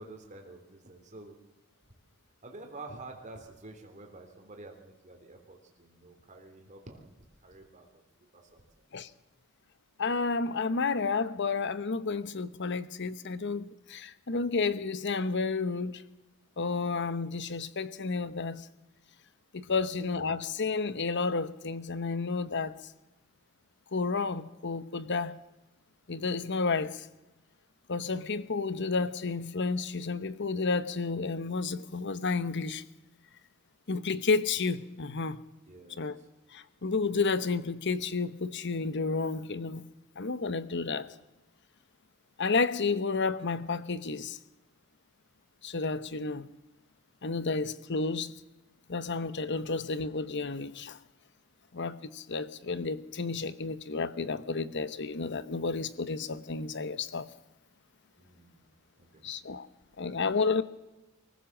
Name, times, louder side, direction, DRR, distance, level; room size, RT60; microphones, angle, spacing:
voice 1, 0.0-1.3 2.4-7.1 7.4-7.9 8.2-8.9 19.7-19.9 35.7-36.3 58.2-58.6 59.0-59.3, right 2 dB, 35° right, 3.4 m, -49 dB
voice 2, 10.0-16.0 16.6-18.7 19.5-22.8 23.9-25.4 26.1-27.1 27.9-32.8 33.9-35.4 36.0-36.2 36.5-39.9 40.2-41.1 42.4-44.4 45.6-46.5 47.2-48.3 48.9-51.0 51.7-57.3 59.2-59.7 60.0-60.6, left 4 dB, 60° left, 1.0 m, -31 dB
24.0 x 15.5 x 7.4 m
head